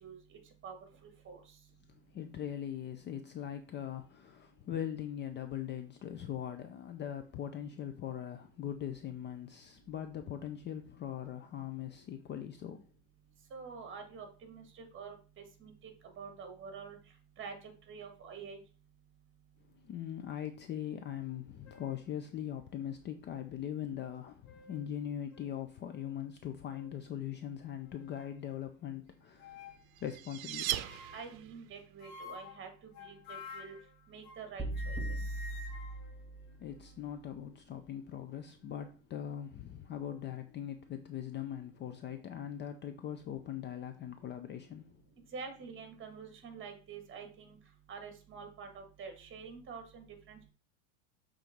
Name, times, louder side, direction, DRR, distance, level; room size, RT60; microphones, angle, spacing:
voice 1, 0.0-0.8 1.2-1.4 13.5-17.0 17.4-18.6 31.1-33.8 34.1-35.2 45.3-47.6 47.9-50.5, right 5 dB, 30° right, 1.9 m, -47 dB
voice 2, 1.9-12.8 19.7-29.7 30.0-30.8 36.5-44.8, left 10 dB, 25° left, 0.5 m, -41 dB
sound 1, 21.2-21.3 21.6-22.0 22.8-22.9 24.1-24.9 25.3-25.5 25.9-26.1 26.7-27.0 27.6-28.4 29.4-29.8 30.8-31.4 32.0-34.5 34.7-37.1, left 4 dB, 65° left, 1.7 m, -51 dB
sound 2, 29.6-31.7, right 14 dB, 80° right, 0.6 m, -38 dB
sound 3, 34.6-36.7, right 1 dB, ahead, 1.2 m, -38 dB
6.9 x 3.8 x 4.5 m
supercardioid pair, 115°, 41 cm